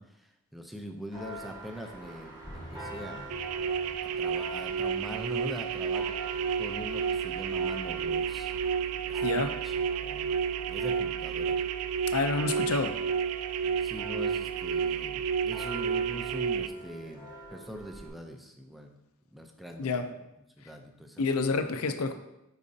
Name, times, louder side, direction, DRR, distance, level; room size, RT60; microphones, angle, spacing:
voice 1, 0.0-3.4 4.0-8.5 9.1-10.3 10.7-11.6 13.6-18.9 19.3-20.1 20.6-21.5, equal, ahead, 3 dB, 0.5 m, -43 dB
Church bell, 1.1-18.1, right 1 dB, 15° right, 1.4 m, -46 dB
sound 1, 2.4-6.4, equal, 25° left, 0.8 m, -51 dB
sound 2, 3.3-16.7, right 7 dB, 80° right, 0.3 m, -31 dB
voice 2, 9.2-9.6 12.1-13.0 19.8-20.1 21.2-22.1, left 3 dB, 70° left, 9 dB, 0.6 m, -28 dB
10.0 x 4.2 x 2.8 m, 0.90 s
head